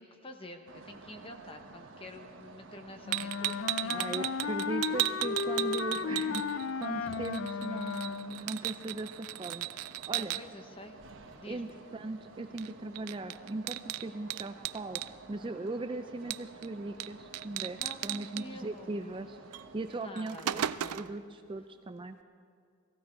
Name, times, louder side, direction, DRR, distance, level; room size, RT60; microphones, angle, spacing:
voice 1, 0.0-4.3 6.9-7.2 8.3-8.5 10.1-11.0 11.4-11.8 17.7-19.0 19.9-21.1, left 1 dB, 25° left, 6 dB, 0.9 m, -48 dB
sound 1, 0.7-20.0, right 3 dB, 55° right, 1.1 m, -52 dB
Wind instrument woodwind instrument, 3.0-8.5, left 5 dB, 55° left, 0.4 m, -34 dB
sound 2, 3.1-6.9 7.1-10.4 12.6-12.7 13.0-15.1 16.3-16.7 17.0-17.1 17.3-18.4 19.5-19.6 20.0-21.2, right 14 dB, 90° right, 0.4 m, -35 dB
voice 2, 3.9-9.7 10.1-10.4 11.5-15.0 15.3-20.6 20.9-22.2, right 2 dB, 20° right, 8 dB, 0.4 m, -39 dB
17.5 x 15.5 x 4.6 m, 2.2 s
head